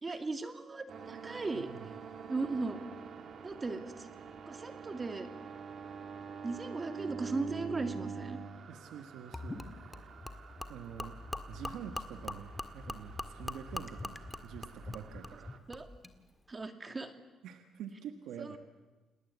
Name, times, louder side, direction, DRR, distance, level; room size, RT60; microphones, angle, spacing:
voice 1, 0.0-1.7 2.3-2.8 3.4-4.1 4.5-5.3 6.4-8.4 15.7-15.9 16.5-17.1 18.4-18.6, right 3 dB, 25° right, 7 dB, 2.4 m, -37 dB
sound 1, 0.9-15.6, right 6 dB, 55° right, 2.0 m, -47 dB
voice 2, 1.5-1.9 8.7-9.7 10.7-11.2 11.5-15.5 17.4-18.6, right 8 dB, 85° right, 6 dB, 1.6 m, -47 dB
Gurgling / Liquid, 9.3-16.2, left 2 dB, 15° left, 1.8 m, -43 dB
28.5 x 19.0 x 8.2 m, 1.2 s
cardioid pair, 90°, 0 cm